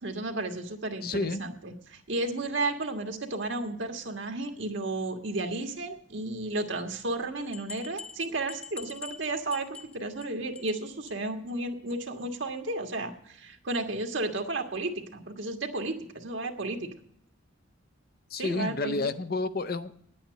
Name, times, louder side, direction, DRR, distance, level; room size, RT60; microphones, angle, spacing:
voice 1, 0.0-16.9 18.4-19.0, right 2 dB, 65° right, 3 dB, 1.5 m, -33 dB
voice 2, 1.0-1.4 18.3-20.0, left 3 dB, 50° left, 10 dB, 0.6 m, -30 dB
sound 1, 7.5-10.3 10.5-10.8 11.1-11.2 11.5-11.6 11.9-12.0, left 4 dB, 5° left, 1.1 m, -44 dB
10.5 x 8.6 x 9.2 m, 0.72 s
head